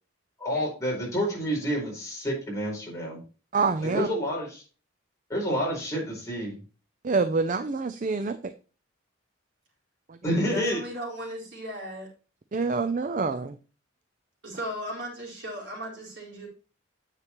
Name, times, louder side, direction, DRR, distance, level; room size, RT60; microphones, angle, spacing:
voice 1, 0.4-3.2 3.8-4.6 5.3-6.6 10.2-10.8, equal, 15° left, -3 dB, 4.6 m, -29 dB
voice 2, 3.5-4.1 7.0-8.5 10.1-10.2 12.5-13.6, right 4 dB, 40° right, 11 dB, 0.4 m, -27 dB
voice 3, 10.2-12.1 14.4-16.5, equal, 60° right, -3 dB, 4.2 m, -37 dB
9.7 x 7.4 x 3.0 m, 0.35 s
head